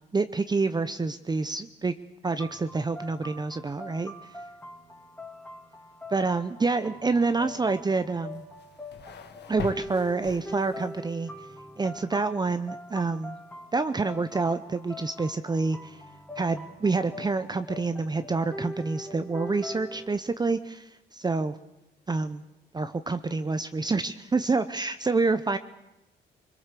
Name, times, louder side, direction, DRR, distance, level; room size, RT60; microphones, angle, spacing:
voice 1, 0.0-1.9 2.2-4.4 6.1-8.4 9.5-11.3 11.8-13.3 13.7-16.0 16.4-21.6 22.1-22.4 22.7-25.6, right 3 dB, 20° right, 10 dB, 0.7 m, -27 dB
sound 1, 2.4-20.2, equal, 10° left, 2.8 m, -43 dB
sound 2, 8.3-11.0, left 7 dB, 60° left, 1.6 m, -42 dB
23.0 x 21.5 x 6.8 m, 0.95 s
cardioid pair, 90°, 20 cm